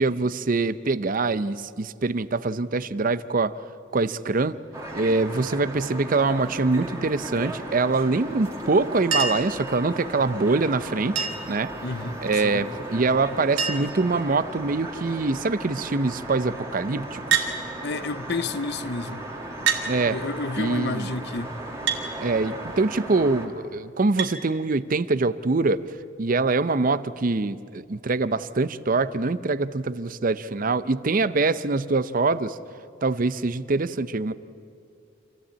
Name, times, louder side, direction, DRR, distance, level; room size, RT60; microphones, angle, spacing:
voice 1, 0.0-3.5 3.9-4.6 4.9-11.7 12.2-17.5 19.8-20.2 20.6-21.1 22.2-25.8 26.2-32.6 33.0-34.3, right 3 dB, 45° right, 0.6 m, -24 dB
sound 1, 4.7-23.5, right 1 dB, 15° right, 2.4 m, -36 dB
Chink clink, 9.1-9.5 11.1-11.6 12.9-13.0 13.2-13.3 13.6-14.0 14.8-15.2 17.3-17.5 18.6-18.7 19.7-19.9 21.9-22.1 24.2-24.4 25.8-25.9, right 6 dB, 75° right, 2.4 m, -25 dB
voice 2, 11.8-12.7 17.8-19.2 20.1-21.5, left 3 dB, 55° left, 0.7 m, -30 dB
26.5 x 15.5 x 8.6 m
head